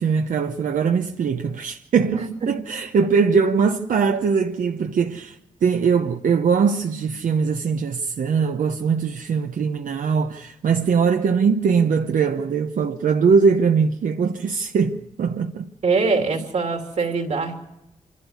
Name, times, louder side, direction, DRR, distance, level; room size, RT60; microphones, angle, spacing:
voice 1, 0.0-15.7, right 5 dB, 80° right, 0.9 m, -21 dB
voice 2, 2.1-2.5 15.8-17.6, right 4 dB, 55° right, 2.8 m, -23 dB
27.0 x 12.0 x 9.5 m
wide cardioid pair, 165°, 14 cm